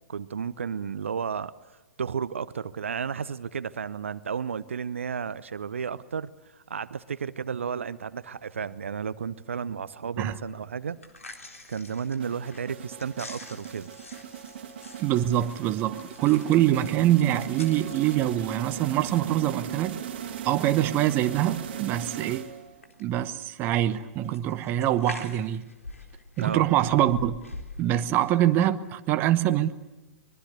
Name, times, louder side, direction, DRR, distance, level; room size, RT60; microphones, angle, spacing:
voice 1, 0.1-1.5 2.0-11.0 11.7-13.9 26.4-26.6, right 6 dB, 60° right, 0.8 m, -33 dB
sound 1, 10.9-28.7, left 2 dB, 75° left, 3.8 m, -47 dB
sound 2, 12.2-22.9, right 9 dB, 45° right, 2.8 m, -38 dB
voice 2, 15.0-20.0 20.4-22.5 23.0-25.6 26.4-27.4 27.8-29.7, right 13 dB, 25° right, 1.0 m, -24 dB
25.0 x 22.0 x 8.2 m
figure-of-eight pair, 115°, 8 cm